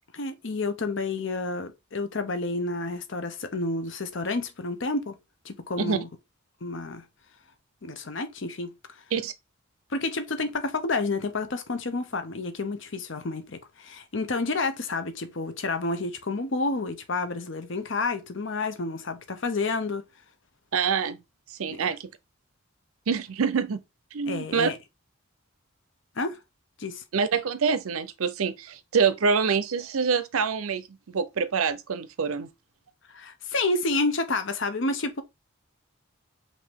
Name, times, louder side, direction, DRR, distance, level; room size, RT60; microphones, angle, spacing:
voice 1, 0.1-5.1 5.4-6.1 6.6-7.0 7.8-8.7 9.9-20.0 21.7-21.8 24.3-24.8 26.2-26.4 26.8-27.0 33.1-35.2, left 3 dB, 60° left, 0.8 m, -30 dB
voice 2, 20.7-21.2 21.6-22.1 23.1-23.8 24.1-24.7 27.1-32.5, right 6 dB, 80° right, 0.6 m, -26 dB
5.4 x 2.7 x 3.6 m
head